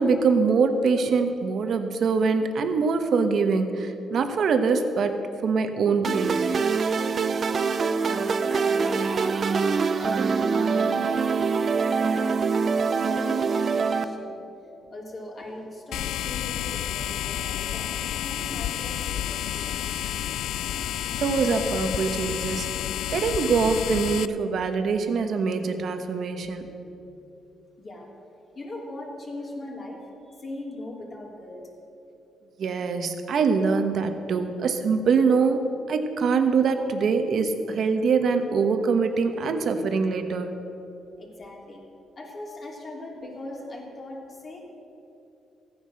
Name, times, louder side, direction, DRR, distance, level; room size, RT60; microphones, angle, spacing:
voice 1, 0.0-6.5 21.2-22.7 23.1-26.7 32.6-40.5, right 5 dB, 60° right, 7 dB, 1.2 m, -24 dB
sound 1, 6.0-14.0, right 5 dB, 45° right, 0.6 m, -24 dB
voice 2, 7.9-9.6 10.0-14.4 14.8-19.9 26.9-27.2 27.8-28.1 28.5-31.6 41.2-41.8 42.1-44.6, left 2 dB, 40° left, -2 dB, 3.2 m, -40 dB
sound 2, 15.9-24.3, left 11 dB, 80° left, 0.3 m, -30 dB
14.5 x 9.7 x 6.3 m, 2.8 s
cardioid pair, 90°, 0 cm